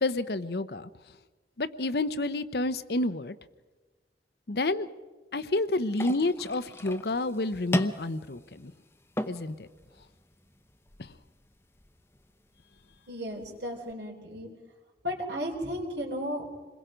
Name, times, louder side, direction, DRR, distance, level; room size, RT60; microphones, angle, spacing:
voice 1, 0.0-0.9 1.6-3.3 4.5-4.9 5.3-8.7 9.3-9.7 11.0-11.1, left 2 dB, 60° left, 14 dB, 0.8 m, -29 dB
sound 1, 5.9-13.9, left 1 dB, 15° left, 0.8 m, -38 dB
voice 2, 13.1-14.5 15.0-16.5, equal, 85° right, -3 dB, 3.8 m, -34 dB
28.0 x 21.5 x 5.1 m, 1.3 s
head